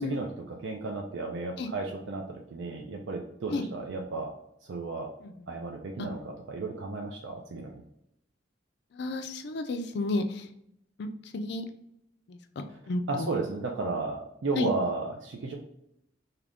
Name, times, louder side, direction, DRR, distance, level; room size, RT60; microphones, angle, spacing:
voice 1, 0.0-4.3 4.7-5.1 5.5-7.8 13.1-15.5, right 3 dB, 70° right, 2 dB, 0.4 m, -33 dB
voice 2, 8.9-10.5 11.0-11.1 11.3-11.6 12.3-13.3 14.6-14.7, left 2 dB, 60° left, 7 dB, 0.4 m, -32 dB
2.8 x 2.5 x 3.4 m, 0.78 s
head